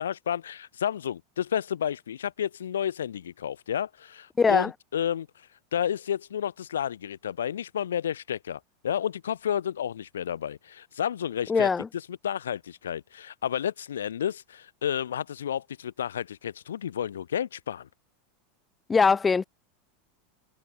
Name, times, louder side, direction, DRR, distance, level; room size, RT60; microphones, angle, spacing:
voice 1, 0.0-5.3 5.7-11.7 12.1-17.9, left 9 dB, 80° left, 0.9 m, -31 dB
voice 2, 4.4-4.7 11.5-11.9 18.9-19.5, left 5 dB, 20° left, 1.7 m, -21 dB
hypercardioid pair, 95°, 0 cm